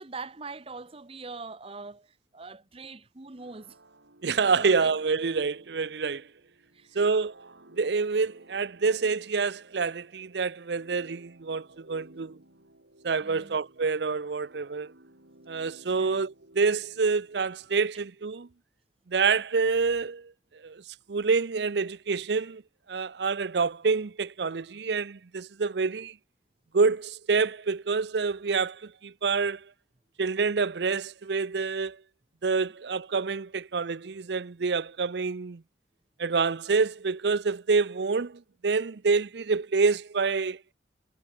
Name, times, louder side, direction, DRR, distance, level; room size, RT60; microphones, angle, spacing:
voice 1, 0.0-3.8 4.6-4.9 6.7-7.1 13.2-13.6 16.0-16.2, right 4 dB, 30° right, 1.0 m, -43 dB
sound 1, 3.4-17.9, right 1 dB, 90° right, 5.8 m, -56 dB
voice 2, 4.2-6.3 6.9-7.3 7.8-12.4 13.0-14.9 15.5-18.5 19.1-20.3 20.6-20.8 21.1-22.6 22.9-26.2 26.7-29.7 30.2-32.0 32.4-35.6 36.2-40.6, right 4 dB, 65° right, 0.6 m, -27 dB
head